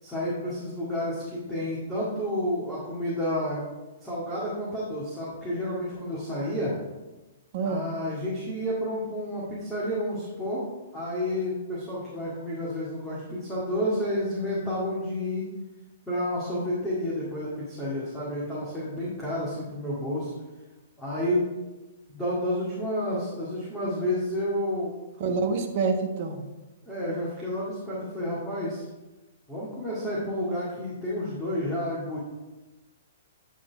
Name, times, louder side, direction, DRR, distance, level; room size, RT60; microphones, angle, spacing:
voice 1, 0.0-3.7 4.0-6.7 7.6-10.6 10.9-15.5 16.1-20.3 21.0-21.5 22.1-24.9 26.9-28.9 29.5-32.2, left 1 dB, 5° left, -9 dB, 2.1 m, -30 dB
voice 2, 7.5-7.9 25.2-26.4, right 4 dB, 45° right, 3 dB, 1.1 m, -27 dB
9.8 x 4.1 x 4.7 m, 1.1 s
figure-of-eight pair, 115°, 0 cm